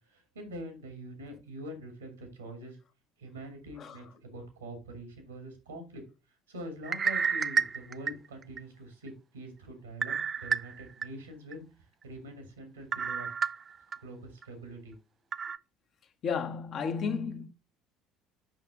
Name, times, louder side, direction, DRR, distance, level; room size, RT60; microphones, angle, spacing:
voice 1, 0.1-2.8 3.2-6.0 6.5-11.6 12.0-13.3 14.0-14.9, right 1 dB, 85° right, 2.6 m, -44 dB
voice 2, 3.8-4.1 16.2-17.5, left 6 dB, 45° left, 1.2 m, -33 dB
sound 1, 6.8-8.6 9.1-9.2 10.0-11.1 11.5-11.6 12.9-14.0 14.4-14.5 15.3-15.6, right 6 dB, 35° right, 0.4 m, -30 dB
6.5 x 5.9 x 3.7 m
hypercardioid pair, 60°, 0 cm